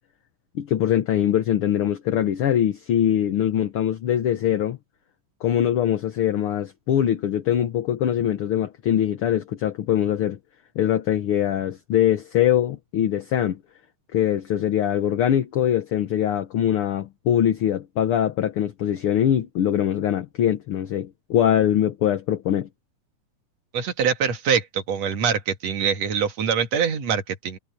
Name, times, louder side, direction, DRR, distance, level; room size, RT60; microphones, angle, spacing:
voice 1, 0.5-4.8 5.4-10.4 10.7-13.6 14.1-22.7, left 10 dB, 60° left, 1.6 m, -22 dB
voice 2, 23.7-27.6, right 7 dB, 60° right, 2.9 m, -24 dB
omnidirectional pair, 3.4 m